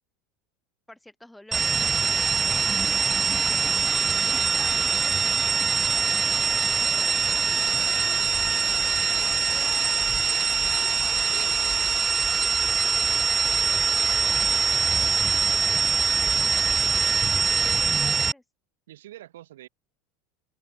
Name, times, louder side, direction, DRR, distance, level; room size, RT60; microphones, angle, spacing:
voice 1, 0.9-10.8 12.8-18.4, left 1 dB, 5° left, 2.1 m, -50 dB
sound 1, 1.5-18.3, right 5 dB, 25° right, 0.5 m, -23 dB
voice 2, 11.2-12.0 15.5-15.6 18.9-19.7, right 14 dB, 85° right, 4.4 m, -45 dB
open air
supercardioid pair, 100°, 0 cm